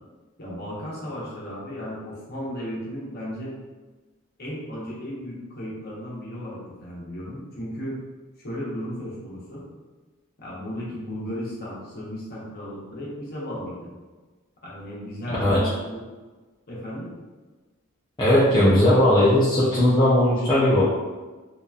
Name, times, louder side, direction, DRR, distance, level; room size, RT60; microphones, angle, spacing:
voice 1, 0.4-3.6 4.4-8.0 8.4-9.6 10.4-13.9 14.6-16.1 16.7-17.1, equal, 45° left, -5 dB, 0.8 m, -35 dB
voice 2, 18.2-20.8, left 1 dB, 20° left, -9 dB, 0.4 m, -18 dB
2.8 x 2.3 x 2.2 m, 1.3 s
head